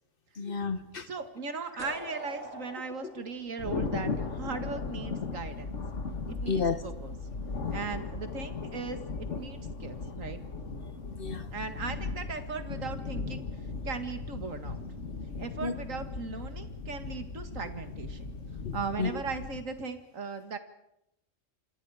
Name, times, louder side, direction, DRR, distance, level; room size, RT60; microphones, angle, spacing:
voice 1, 0.4-1.1 6.5-6.8 11.2-11.5 15.6-15.7 18.6-19.2, left 5 dB, 45° left, 1.3 m, -31 dB
voice 2, 1.1-5.8 6.3-7.1 7.7-10.4 11.5-13.5 13.8-14.8 15.4-18.3 18.7-20.6, right 4 dB, 90° right, 2.2 m, -38 dB
sound 1, 1.8-4.6, right 1 dB, 65° right, 4.7 m, -44 dB
Thunder, 3.6-19.6, left 4 dB, 70° left, 2.0 m, -37 dB
28.5 x 25.0 x 4.9 m
omnidirectional pair, 1.3 m